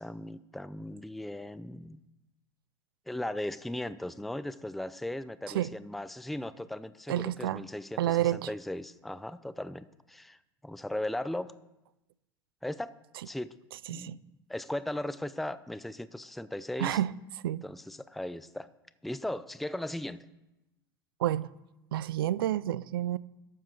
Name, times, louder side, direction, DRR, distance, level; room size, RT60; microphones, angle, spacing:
voice 1, 0.0-2.0 3.1-11.5 12.6-12.9 13.2-13.5 13.9-17.0 17.6-18.7 19.0-20.2, left 1 dB, ahead, 0.5 m, -37 dB
voice 2, 7.1-7.6 8.0-8.5 13.9-14.2 16.8-17.1 17.4-17.6 21.2-21.5 21.9-23.2, right 13 dB, 70° right, 0.4 m, -29 dB
12.0 x 7.4 x 6.8 m
figure-of-eight pair, 80°, 13 cm